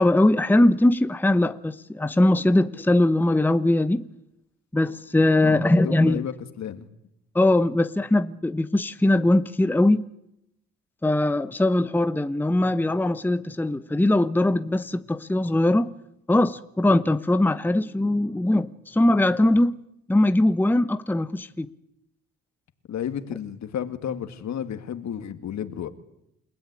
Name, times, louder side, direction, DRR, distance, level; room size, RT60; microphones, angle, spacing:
voice 1, 0.0-4.0 4.7-6.2 7.3-10.1 11.0-15.9 16.3-19.8 20.1-21.7, left 1 dB, 5° left, 0.9 m, -21 dB
voice 2, 5.4-6.9 22.9-25.9, left 9 dB, 65° left, 2.2 m, -32 dB
28.5 x 17.0 x 9.7 m
cardioid pair, 90°, 30 cm